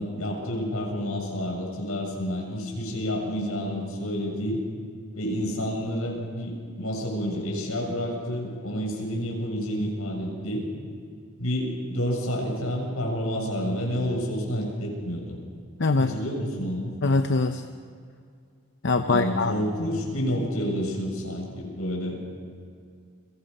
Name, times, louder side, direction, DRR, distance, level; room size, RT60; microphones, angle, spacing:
voice 1, 0.0-4.6 5.1-10.7 11.4-15.4 16.0-16.9 19.0-22.2, equal, 75° left, -1 dB, 7.0 m, -29 dB
voice 2, 15.8-16.1 17.0-17.6 18.8-19.5, left 3 dB, 50° left, 7 dB, 0.8 m, -23 dB
29.5 x 23.5 x 5.5 m, 2.2 s
head